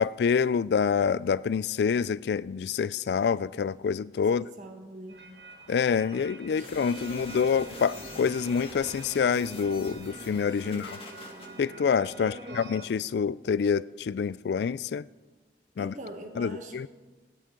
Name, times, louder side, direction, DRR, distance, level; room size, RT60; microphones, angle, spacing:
voice 1, 0.0-4.4 5.7-11.0 11.6-15.0 15.8-15.9 16.4-16.9, left 6 dB, 70° left, 0.3 m, -27 dB
voice 2, 4.3-5.2 6.5-7.2 10.6-10.8 12.2-12.6 15.8-16.9, equal, 45° right, 1.5 m, -43 dB
sound 1, 5.1-12.9, right 2 dB, 70° right, 1.7 m, -45 dB
sound 2, 6.6-11.5, left 3 dB, 35° left, 2.1 m, -46 dB
18.5 x 13.0 x 3.8 m
head